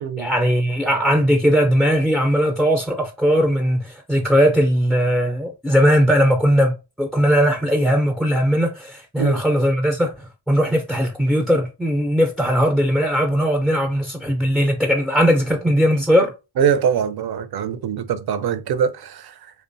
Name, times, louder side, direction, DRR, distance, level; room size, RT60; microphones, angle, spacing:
voice 1, 0.2-16.3, equal, ahead, 0.3 m, -19 dB
voice 2, 16.6-19.5, right 7 dB, 50° right, 0.5 m, -23 dB
2.4 x 2.2 x 2.6 m
supercardioid pair, 40°, 49 cm